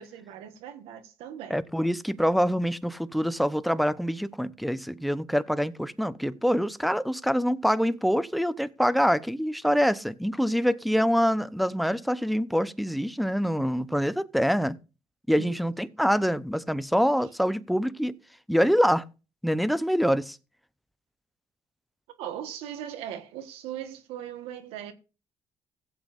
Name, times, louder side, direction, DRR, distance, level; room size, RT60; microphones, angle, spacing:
voice 1, 0.0-1.6 15.4-15.6 22.2-24.9, right 10 dB, 90° right, 1.4 m, -39 dB
voice 2, 1.5-14.8 15.3-18.2 18.5-19.0 19.4-20.4, equal, ahead, 0.8 m, -25 dB
16.0 x 8.2 x 2.6 m
supercardioid pair, 80°, 10 cm